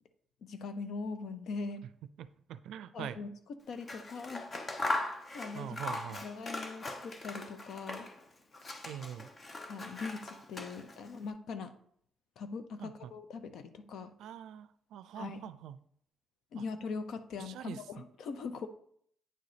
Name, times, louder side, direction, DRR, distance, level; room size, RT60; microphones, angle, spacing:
voice 1, 0.4-1.8 2.9-3.3 3.7-4.5 5.0-5.8 6.2-8.1 9.7-11.7 12.4-14.1 15.2-15.5 16.5-18.7, left 4 dB, 70° left, 10 dB, 0.7 m, -41 dB
voice 2, 2.2-3.2 5.5-6.2 8.9-9.3 12.8-13.1 14.2-15.8 16.6-16.7 17.4-17.8, right 10 dB, 80° right, 14 dB, 0.4 m, -44 dB
Scissors, 3.7-8.2 8.5-11.1, left 2 dB, 35° left, 0.9 m, -39 dB
8.9 x 4.0 x 4.9 m, 0.65 s
cardioid pair, 90°, 0 cm